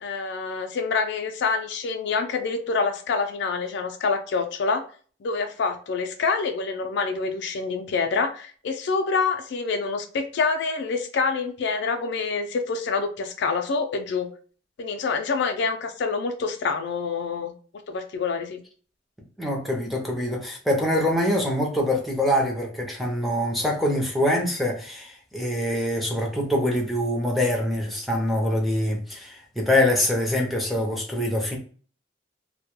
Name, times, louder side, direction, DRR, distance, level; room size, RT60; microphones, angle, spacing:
voice 1, 0.0-4.8 5.2-14.3 14.8-17.5 17.9-18.6, left 4 dB, 60° left, 0.4 m, -26 dB
voice 2, 19.4-31.6, left 1 dB, ahead, 0.5 m, -24 dB
2.1 x 2.1 x 2.9 m
head